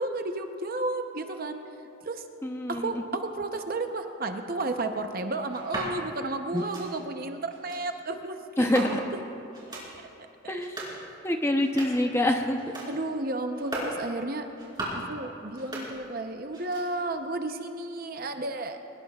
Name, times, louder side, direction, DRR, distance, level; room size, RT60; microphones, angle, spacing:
voice 1, 0.0-2.2 2.7-9.0 9.7-9.8 10.4-10.5 12.9-14.5 15.0-18.8, right 2 dB, 45° right, 6 dB, 0.8 m, -33 dB
voice 2, 2.4-3.0 6.5-6.6 8.6-9.0 10.5-10.8 11.2-12.7, left 1 dB, 10° left, 4 dB, 0.8 m, -26 dB
sound 1, 5.5-5.9 6.5-6.9 7.5-7.8 8.6-9.2 9.5-9.9 10.5-11.0 11.5-12.1 12.5-12.9 13.5-14.0 14.5-15.1 15.5-16.2 16.5-17.1, right 1 dB, 20° right, 4.2 m, -38 dB
23.0 x 20.0 x 2.4 m, 2.6 s
head